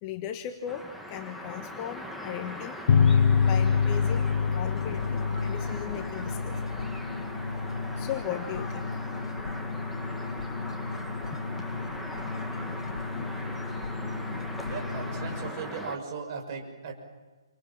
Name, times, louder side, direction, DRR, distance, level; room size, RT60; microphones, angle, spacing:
voice 1, 0.0-2.8 3.4-6.5 8.0-9.0, left 10 dB, 25° left, 7 dB, 1.3 m, -37 dB
sound 1, 0.7-16.0, left 1 dB, ahead, 1.9 m, -40 dB
sound 2, 2.9-8.0, left 6 dB, 55° left, 0.8 m, -25 dB
sound 3, 4.7-15.5, left 3 dB, 85° left, 1.2 m, -36 dB
voice 2, 14.7-16.9, right 5 dB, 35° right, 2 dB, 6.0 m, -37 dB
30.0 x 26.0 x 7.5 m, 1.3 s
hypercardioid pair, 155°, 3 cm